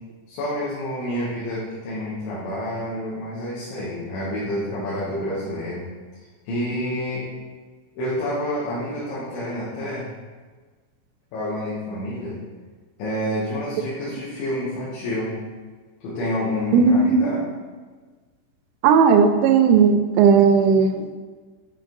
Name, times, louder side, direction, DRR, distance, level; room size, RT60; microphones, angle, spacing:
voice 1, 0.3-5.9 6.5-7.3 8.0-10.1 11.3-12.4 13.0-15.3 16.0-17.4, left 1 dB, 75° left, -9 dB, 3.6 m, -28 dB
voice 2, 16.7-17.3 18.8-21.2, right 6 dB, 85° right, 6 dB, 2.6 m, -16 dB
8.7 x 4.6 x 3.9 m, 1.4 s
omnidirectional pair, 5.4 m